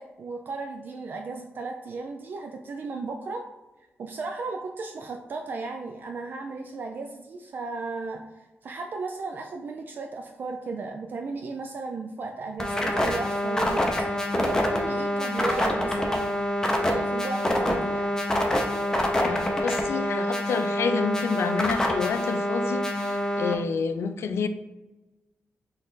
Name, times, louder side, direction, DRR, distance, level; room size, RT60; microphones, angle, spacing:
voice 1, 0.0-3.4 4.0-8.2 8.6-16.3 16.8-18.1, right 3 dB, 45° right, 2 dB, 0.3 m, -35 dB
sound 1, 12.6-23.5, left 1 dB, 15° left, 0.5 m, -26 dB
voice 2, 19.2-24.5, left 5 dB, 75° left, 9 dB, 0.4 m, -29 dB
4.1 x 3.1 x 3.9 m, 1.1 s
wide cardioid pair, 175°, 4 cm